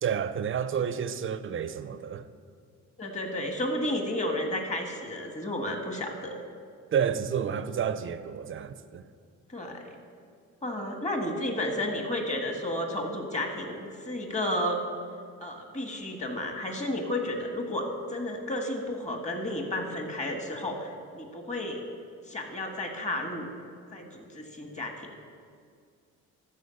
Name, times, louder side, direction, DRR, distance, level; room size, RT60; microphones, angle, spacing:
voice 1, 0.0-2.3 6.9-9.0, right 7 dB, 45° right, 0.6 m, -30 dB
voice 2, 3.0-6.4 9.5-10.0 10.6-14.8 15.4-21.8 22.3-23.5 23.9-25.1, left 1 dB, 25° left, 1.6 m, -32 dB
13.5 x 4.6 x 7.0 m
cardioid pair, 90°, 30 cm